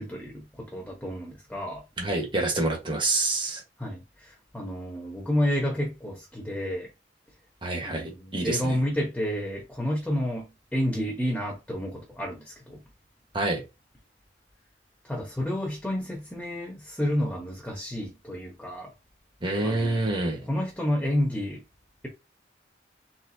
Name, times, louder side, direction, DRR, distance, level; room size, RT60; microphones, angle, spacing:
voice 1, 0.0-1.8 3.8-6.9 7.8-12.8 15.0-18.9 19.6-20.2 20.5-21.6, equal, 5° left, 1.1 m, -30 dB
voice 2, 2.0-3.6 7.6-8.8 13.3-13.6 19.4-20.4, right 2 dB, 25° right, 1.4 m, -27 dB
4.2 x 3.8 x 2.8 m
head